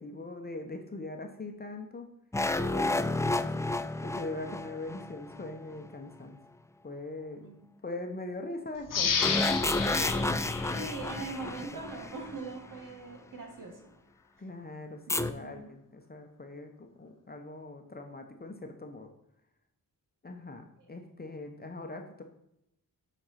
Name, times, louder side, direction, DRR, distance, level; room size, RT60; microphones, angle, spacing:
voice 1, 0.0-2.1 2.5-3.5 4.0-6.4 6.8-7.5 7.8-10.9 14.4-19.1 20.2-22.2, left 2 dB, 25° left, 4 dB, 1.0 m, -41 dB
sound 1, 2.3-5.8 9.2-12.5 15.1-15.3, left 2 dB, 10° left, 0.3 m, -31 dB
voice 2, 7.3-7.7 10.7-13.8 15.2-15.7 20.8-20.9, right 3 dB, 60° right, 2 dB, 2.1 m, -41 dB
sound 2, 8.9-11.6 12.0-12.1, left 6 dB, 60° left, 1.1 m, -32 dB
7.7 x 4.4 x 5.8 m, 0.79 s
cardioid pair, 85°, 37 cm